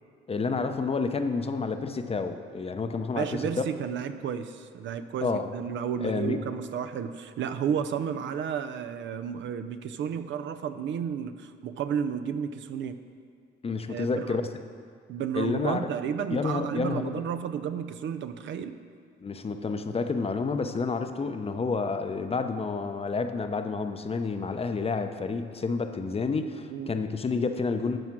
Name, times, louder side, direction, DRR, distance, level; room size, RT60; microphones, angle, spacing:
voice 1, 0.3-3.6 5.2-5.5 6.0-6.4 7.7-7.8 13.6-14.4 15.3-15.9 16.3-17.2 19.2-28.0, left 4 dB, 30° left, 8 dB, 0.7 m, -29 dB
voice 2, 3.1-13.0 13.9-14.4 15.1-18.8 26.7-26.9, right 8 dB, 70° right, 10 dB, 0.6 m, -32 dB
13.0 x 4.9 x 6.0 m, 2.1 s
cardioid pair, 90°, 20 cm